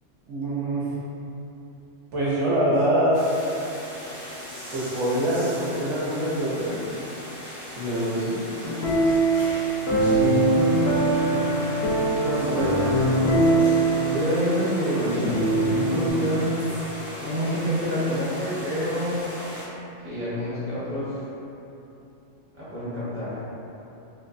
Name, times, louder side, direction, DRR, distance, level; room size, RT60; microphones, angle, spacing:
voice 1, 0.3-0.8 2.1-3.2 4.7-6.8 7.8-8.4, right 1 dB, 70° right, -8 dB, 0.9 m, -24 dB
sound 1, 3.1-19.7, equal, 50° right, 1.1 m, -38 dB
sound 2, 8.6-16.1, right 2 dB, 80° left, 1.0 m, -22 dB
voice 2, 11.2-11.8 12.2-12.8 14.0-16.6 17.2-19.2 20.0-21.2 22.5-23.4, equal, 15° right, -12 dB, 0.7 m, -28 dB
3.1 x 2.0 x 2.5 m, 2.9 s
omnidirectional pair, 1.3 m